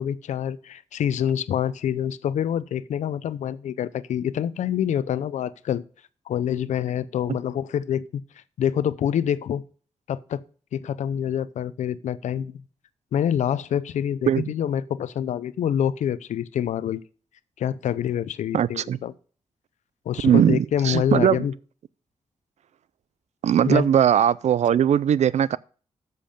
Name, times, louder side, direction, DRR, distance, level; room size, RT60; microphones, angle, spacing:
voice 1, 0.0-5.8 6.3-8.2 8.6-9.6 10.1-10.4 10.7-12.6 13.1-17.0 17.6-19.1 20.1-21.5 23.7-23.9, left 9 dB, 90° left, 0.5 m, -26 dB
voice 2, 18.5-19.0 20.2-21.4 23.4-25.6, right 9 dB, 70° right, 0.4 m, -20 dB
7.7 x 6.8 x 5.1 m
cardioid pair, 65°, 12 cm